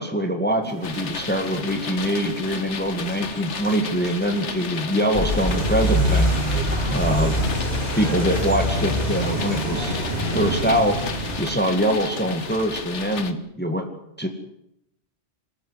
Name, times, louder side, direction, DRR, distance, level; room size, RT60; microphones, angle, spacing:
voice 1, 0.0-6.4 6.9-7.4 7.9-10.0 10.3-11.0 11.4-13.9 14.2-14.3, equal, 10° left, 5 dB, 2.0 m, -24 dB
sound 1, 0.6-12.5, right 2 dB, 65° right, 3.1 m, -38 dB
sound 2, 0.8-13.3, left 5 dB, 75° left, 1.8 m, -34 dB
sound 3, 5.1-11.4, equal, 35° left, 7.5 m, -24 dB
26.5 x 15.0 x 8.1 m, 0.77 s
omnidirectional pair, 1.2 m